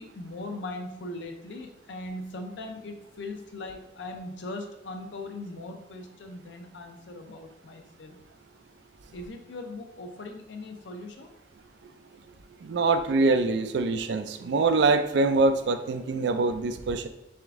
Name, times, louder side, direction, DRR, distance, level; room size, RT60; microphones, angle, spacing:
voice 1, 0.0-8.2 9.1-11.3, left 2 dB, 80° left, 4 dB, 0.6 m, -39 dB
voice 2, 12.6-17.1, right 3 dB, 70° right, 9 dB, 0.3 m, -24 dB
3.6 x 3.4 x 3.5 m, 0.86 s
head